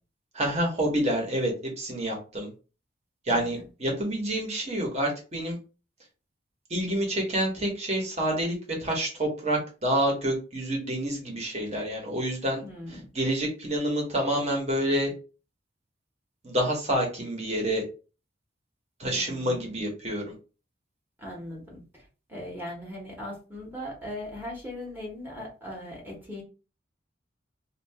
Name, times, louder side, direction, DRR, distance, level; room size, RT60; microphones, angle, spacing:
voice 1, 0.3-2.5 3.2-5.6 6.7-12.6 13.1-15.1 16.4-17.8 19.0-20.2, right 1 dB, 35° right, 0 dB, 1.1 m, -28 dB
voice 2, 3.3-3.7 12.6-13.1 19.1-19.8 21.2-26.4, left 1 dB, 10° right, -4 dB, 1.0 m, -39 dB
2.7 x 2.5 x 3.4 m, 0.34 s
head